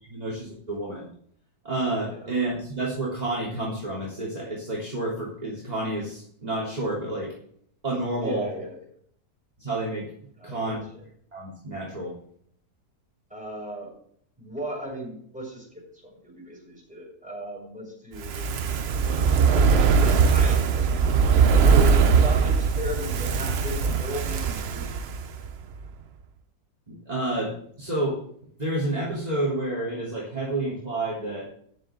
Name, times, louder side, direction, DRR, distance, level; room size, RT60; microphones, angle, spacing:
voice 1, 0.0-1.1 1.6-7.3 7.8-8.5 9.6-10.1 10.4-10.8 11.3-12.1 26.9-28.2 28.6-31.5, right 2 dB, 25° right, -5 dB, 3.6 m, -29 dB
voice 2, 8.2-8.7 10.4-10.8 13.3-13.9 14.4-18.5 19.5-20.9 21.5-25.0, equal, 5° right, -3 dB, 6.8 m, -36 dB
Fire, 18.1-25.5 25.8-25.9, right 6 dB, 50° right, 0.8 m, -21 dB
14.0 x 10.5 x 3.8 m, 0.62 s
omnidirectional pair, 1.7 m